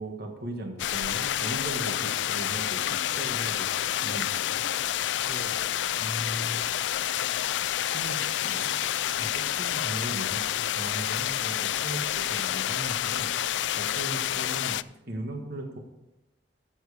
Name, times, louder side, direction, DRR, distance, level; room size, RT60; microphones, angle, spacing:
voice 1, 0.0-4.6 6.0-6.6 7.9-8.9 9.2-12.0 12.3-13.3 13.7-15.8, right 1 dB, 60° right, 3 dB, 1.6 m, -38 dB
sound 1, 0.8-14.8, left 11 dB, 80° left, 0.3 m, -29 dB
voice 2, 1.7-2.1 5.2-7.8 13.8-14.1, right 1 dB, 20° right, 2 dB, 1.1 m, -50 dB
14.0 x 7.4 x 4.9 m, 0.94 s
head